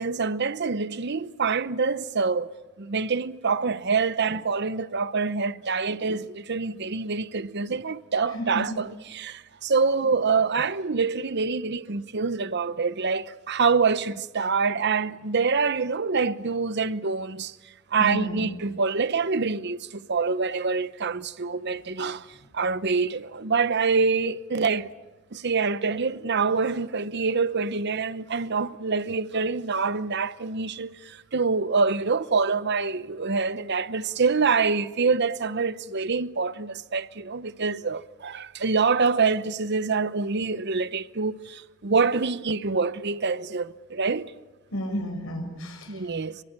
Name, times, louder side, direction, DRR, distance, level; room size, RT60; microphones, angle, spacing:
voice 1, 0.0-17.6 17.9-22.3 22.5-24.9 25.3-44.3 45.9-46.4, right 4 dB, 55° right, 0.9 m, -26 dB
voice 2, 8.3-8.8 18.0-18.5 44.7-46.1, equal, 75° left, 6.2 m, -32 dB
25.5 x 23.0 x 8.9 m
head